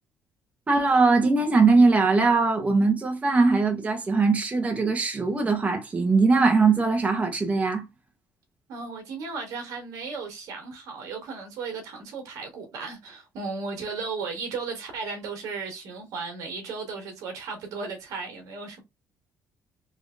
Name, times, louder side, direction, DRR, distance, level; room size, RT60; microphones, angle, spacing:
voice 1, 0.7-7.9, right 3 dB, 25° right, 1.0 m, -21 dB
voice 2, 8.7-18.8, right 4 dB, 80° right, 1.6 m, -35 dB
3.5 x 3.1 x 2.5 m
cardioid pair, 110°, 6 cm